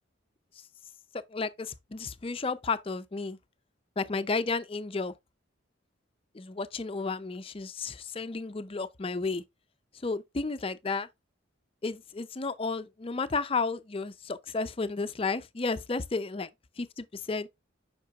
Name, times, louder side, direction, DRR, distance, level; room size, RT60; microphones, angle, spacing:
voice 1, 1.3-3.4 4.0-5.1 6.3-9.4 10.0-11.1 11.8-16.5 16.8-17.5, left 4 dB, 25° left, 0.4 m, -32 dB
7.5 x 5.9 x 2.3 m
head